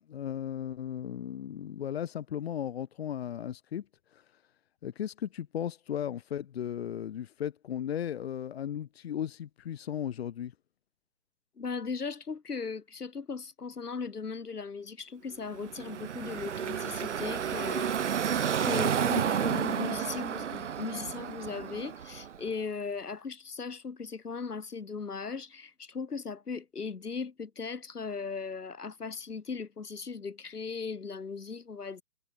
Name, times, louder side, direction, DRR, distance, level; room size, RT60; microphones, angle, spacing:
voice 1, 0.0-3.8 4.1-4.2 4.8-10.5, left 9 dB, 40° left, 3.3 m, -36 dB
voice 2, 11.6-18.1 18.6-32.0, left 5 dB, 65° left, 3.8 m, -38 dB
Car passing by / Traffic noise roadway noise, 15.5-22.5, right 8 dB, 45° right, 2.0 m, -31 dB
figure-of-eight pair, 140°, 49 cm